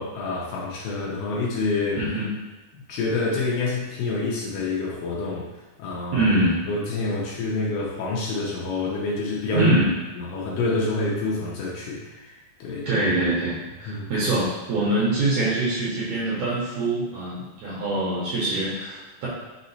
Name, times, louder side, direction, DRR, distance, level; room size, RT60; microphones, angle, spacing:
voice 1, 0.0-2.0 2.9-5.5 5.8-6.3 6.7-9.7 10.2-12.3 12.6-12.9 13.9-14.1, left 3 dB, 80° left, -4 dB, 2.1 m, -27 dB
voice 2, 2.0-2.3 6.1-6.6 9.5-9.9 12.9-19.3, right 2 dB, 70° right, -8 dB, 1.8 m, -24 dB
5.7 x 2.1 x 4.0 m, 1.1 s
omnidirectional pair, 4.2 m